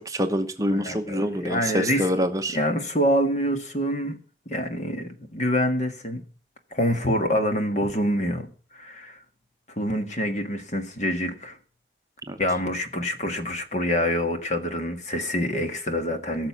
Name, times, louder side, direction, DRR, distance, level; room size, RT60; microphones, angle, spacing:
voice 1, 0.0-2.6 12.3-12.4, equal, 20° right, 1.0 m, -26 dB
voice 2, 0.7-2.1 2.5-4.2 4.5-6.2 6.7-8.5 8.7-9.2 9.8-11.6 12.4-16.5, equal, 40° left, 1.8 m, -26 dB
17.0 x 6.8 x 7.2 m
head